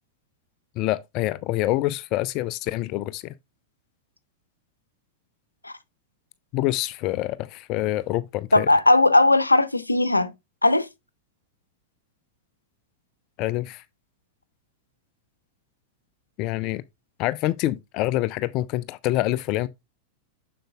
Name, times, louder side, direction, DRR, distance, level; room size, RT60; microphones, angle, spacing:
voice 1, 0.8-3.3 6.5-8.7 13.4-13.8 16.4-16.8 17.2-19.7, left 16 dB, 40° left, 0.4 m, -26 dB
voice 2, 8.5-10.3 10.6-10.9, left 2 dB, 85° left, 0.6 m, -18 dB
7.6 x 6.6 x 2.3 m
figure-of-eight pair, 90°, 0 cm